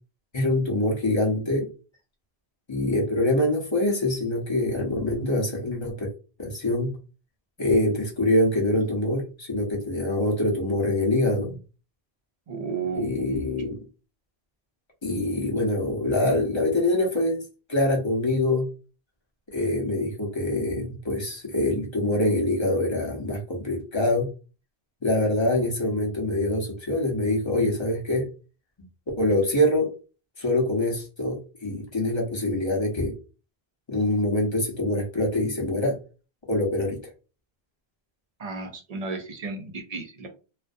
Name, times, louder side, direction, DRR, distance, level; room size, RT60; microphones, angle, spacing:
voice 1, 0.3-1.7 2.7-6.1 6.4-6.9 7.6-11.6 12.9-13.8 15.0-18.7 19.5-24.3 25.0-28.3 29.2-29.9 30.4-33.2 33.9-36.0 36.5-37.1, left 1 dB, 30° left, -1 dB, 0.6 m, -25 dB
voice 2, 12.5-13.4 38.4-40.3, right 5 dB, 55° right, 4 dB, 0.4 m, -33 dB
2.4 x 2.1 x 2.5 m, 0.34 s
omnidirectional pair, 1.1 m